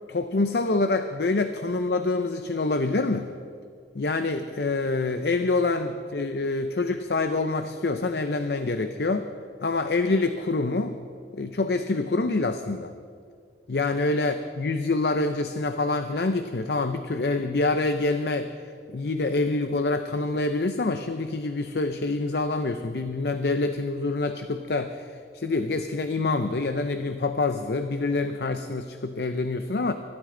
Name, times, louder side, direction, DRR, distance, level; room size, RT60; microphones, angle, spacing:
voice 1, 0.1-3.3 3.9-9.3 9.6-11.0 11.3-12.9 13.7-18.5 18.9-29.9, left 3 dB, 65° left, 8 dB, 0.6 m, -26 dB
24.0 x 12.5 x 3.8 m, 2.2 s
head